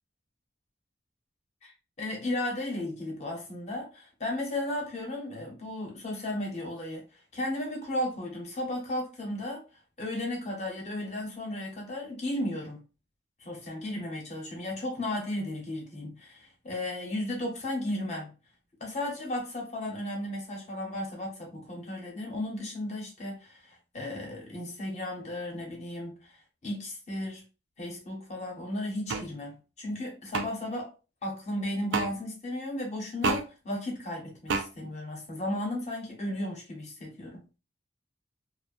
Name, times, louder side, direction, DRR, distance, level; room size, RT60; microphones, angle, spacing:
voice 1, 2.0-7.0 7.3-9.6 10.0-12.8 13.4-18.3 18.8-26.3 26.6-27.4 27.8-30.9 31.2-37.4, left 1 dB, 40° left, 0.9 m, -34 dB
sound 1, 29.1-29.3 30.3-30.5 31.9-32.1 33.2-33.4 34.5-34.7, right 4 dB, 85° right, 0.4 m, -27 dB
2.6 x 2.2 x 2.5 m
head